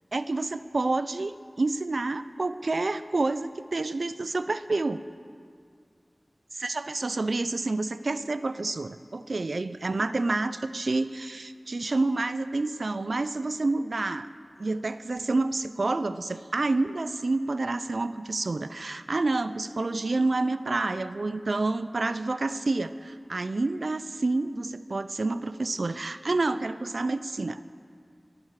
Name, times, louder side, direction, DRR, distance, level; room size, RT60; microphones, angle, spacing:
voice 1, 0.1-1.3 1.6-5.0 6.5-14.3 14.6-27.6, right 2 dB, 90° right, 13 dB, 0.5 m, -28 dB
21.5 x 13.0 x 4.8 m, 2.2 s
wide cardioid pair, 60°, 0 cm